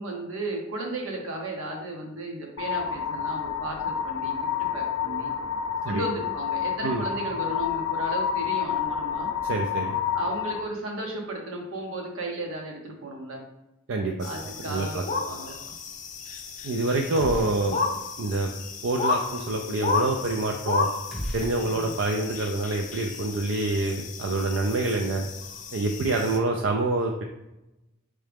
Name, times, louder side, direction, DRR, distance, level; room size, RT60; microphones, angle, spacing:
voice 1, 0.0-4.4 4.7-5.3 5.8-9.3 10.1-13.4 14.2-15.6 17.3-17.4 21.6-21.9, right 2 dB, 85° right, 1 dB, 1.0 m, -34 dB
sound 1, 2.6-10.6, left 8 dB, 90° left, 0.4 m, -29 dB
voice 2, 9.4-10.0 13.9-14.1 14.6-15.0 16.6-17.8 18.2-18.5 18.8-20.9 21.3-25.2 25.7-27.2, right 2 dB, 65° right, 3 dB, 0.4 m, -26 dB
sound 2, 14.2-26.4, left 4 dB, 40° left, 0.5 m, -33 dB
sound 3, 17.2-18.0 18.3-18.4 21.1-22.4, equal, ahead, 1.3 m, -36 dB
4.7 x 3.2 x 3.5 m, 0.94 s
head